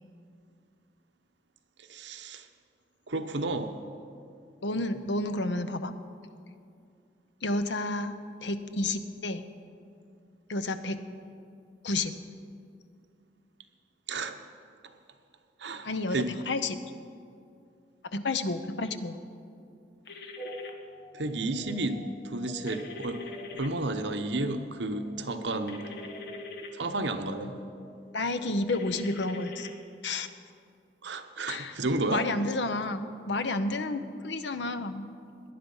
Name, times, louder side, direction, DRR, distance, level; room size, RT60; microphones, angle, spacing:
voice 1, 1.9-2.5 3.1-3.7 14.1-14.3 15.6-16.3 21.1-23.2 23.5-25.9 26.7-27.5 31.0-32.2, right 2 dB, 80° right, 7 dB, 1.0 m, -32 dB
voice 2, 4.6-6.0 7.4-8.1 8.4-9.5 10.5-11.0 11.8-12.1 15.8-16.8 18.1-19.2 28.1-29.7 30.0-30.3 31.5-31.7 32.1-35.1, left 2 dB, 80° left, 10 dB, 0.8 m, -30 dB
sound 1, 20.1-20.7 22.7-23.7 25.7-26.7 28.7-29.7, left 3 dB, 65° left, 1.3 m, -42 dB
sound 2, 20.4-29.5, equal, 30° left, 1.0 m, -48 dB
18.5 x 10.5 x 5.6 m, 2.4 s
head